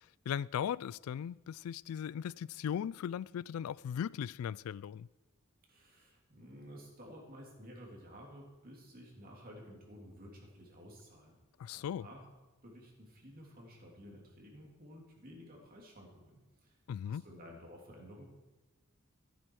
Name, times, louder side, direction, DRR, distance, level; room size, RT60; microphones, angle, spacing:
voice 1, 0.3-5.1 11.6-12.1 16.9-17.2, left 8 dB, 85° left, 0.3 m, -38 dB
voice 2, 5.7-11.4 11.7-12.2 12.6-16.7 17.0-18.2, equal, 45° right, 3.1 m, -53 dB
14.0 x 11.0 x 4.8 m
head